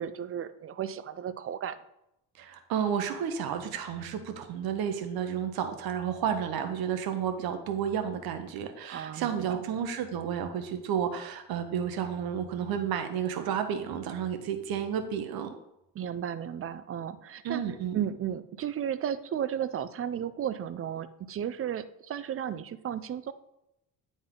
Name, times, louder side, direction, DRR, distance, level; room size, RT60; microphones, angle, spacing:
voice 1, 0.0-1.8 8.9-9.6 15.9-17.6 17.9-23.3, right 9 dB, 40° right, 14 dB, 0.5 m, -34 dB
voice 2, 2.4-15.5 17.4-18.0, right 8 dB, 75° right, 7 dB, 1.0 m, -31 dB
9.4 x 4.0 x 3.8 m, 0.86 s
cardioid pair, 100°, 36 cm